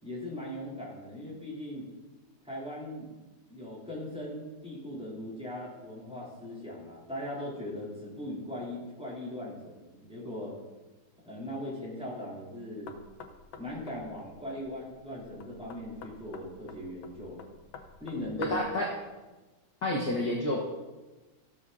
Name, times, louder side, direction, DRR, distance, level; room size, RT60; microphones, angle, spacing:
voice 1, 0.0-1.9 2.4-3.1 3.5-10.5 11.2-13.0 13.6-17.5 18.0-18.6, left 1 dB, 5° right, -8 dB, 3.9 m, -39 dB
Knock, 12.9-18.8, left 5 dB, 70° left, 1.7 m, -48 dB
voice 2, 18.4-18.9 19.8-20.6, left 1 dB, 50° left, -4 dB, 1.9 m, -29 dB
14.0 x 7.3 x 4.2 m, 1.2 s
omnidirectional pair, 2.3 m